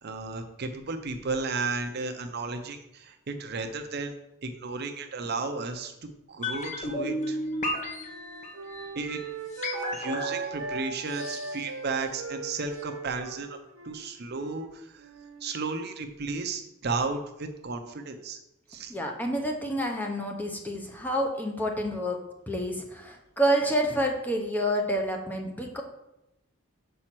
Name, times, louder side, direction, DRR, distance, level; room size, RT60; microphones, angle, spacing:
voice 1, 0.0-4.1 4.4-5.9 6.3-7.4 8.9-9.2 9.9-13.6 13.8-15.1 15.4-18.4 18.7-18.9, right 4 dB, 50° right, 6 dB, 0.6 m, -33 dB
sound 1, 6.4-12.5 12.7-12.8, left 1 dB, 35° left, 1.0 m, -34 dB
Wind instrument woodwind instrument, 7.0-10.8 11.1-14.7 15.0-15.5, right 4 dB, 75° right, 1.0 m, -39 dB
voice 2, 18.9-22.2 22.5-25.8, equal, 10° left, 2 dB, 0.8 m, -28 dB
5.4 x 4.3 x 6.0 m, 0.88 s
head